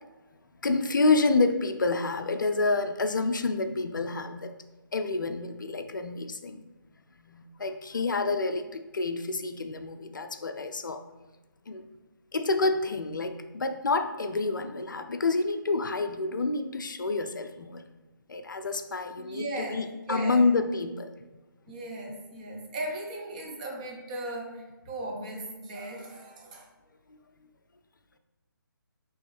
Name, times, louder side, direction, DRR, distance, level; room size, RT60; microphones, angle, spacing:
voice 1, 0.6-4.5 4.9-6.6 7.2-11.0 11.7-11.9 12.3-17.8 18.3-21.1 27.1-27.2, left 3 dB, 60° left, 8 dB, 0.4 m, -28 dB
voice 2, 19.2-19.8 20.1-20.5 21.7-26.7, right 1 dB, 20° right, 0 dB, 0.5 m, -37 dB
4.6 x 3.0 x 3.1 m, 1.1 s
figure-of-eight pair, 145°, 12 cm